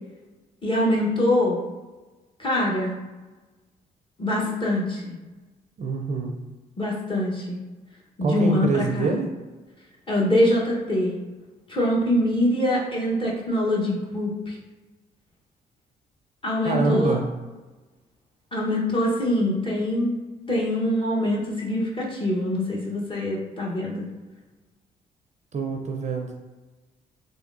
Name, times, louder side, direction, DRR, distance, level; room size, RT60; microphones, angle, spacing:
voice 1, 0.6-1.6 2.4-3.0 4.2-5.1 6.8-7.6 8.2-9.1 10.1-11.1 11.7-14.6 16.4-17.2 18.5-20.1 20.5-24.1, left 1 dB, 25° left, -4 dB, 1.2 m, -24 dB
voice 2, 5.8-6.3 8.2-9.3 16.6-17.3 25.5-26.3, right 3 dB, 40° right, 2 dB, 0.5 m, -25 dB
3.3 x 2.6 x 2.6 m, 1.2 s
hypercardioid pair, 50°, 19 cm